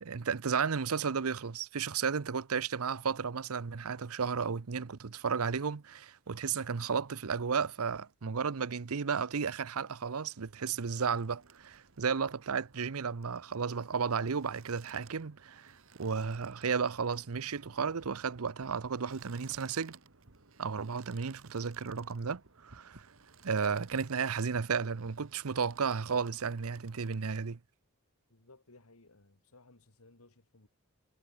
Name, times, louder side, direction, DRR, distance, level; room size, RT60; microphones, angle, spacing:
voice 1, 0.0-19.9 20.6-23.1 23.4-27.6, right 6 dB, 80° right, 0.7 m, -33 dB
sound 1, 10.9-27.3, right 5 dB, 65° right, 1.6 m, -59 dB
voice 2, 28.3-30.7, left 2 dB, 80° left, 2.4 m, -60 dB
head